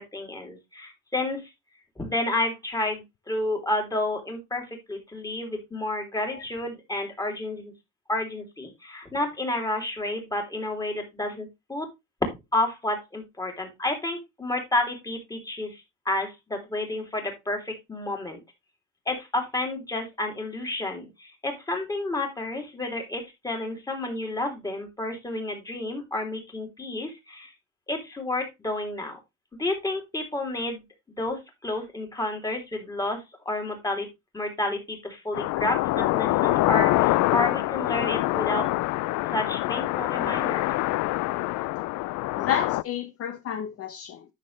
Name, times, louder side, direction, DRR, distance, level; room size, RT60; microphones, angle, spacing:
voice 1, 0.0-1.5 2.0-7.7 8.1-11.9 12.2-18.4 19.1-27.5 27.9-29.2 29.5-30.8 31.2-34.1 34.3-38.6 39.3-40.6, left 2 dB, 10° left, 3.0 m, -30 dB
sound 1, 35.3-42.8, left 19 dB, 65° left, 0.5 m, -25 dB
voice 2, 42.3-44.3, left 9 dB, 45° left, 1.0 m, -30 dB
11.0 x 6.6 x 3.2 m
cardioid pair, 145°, 32 cm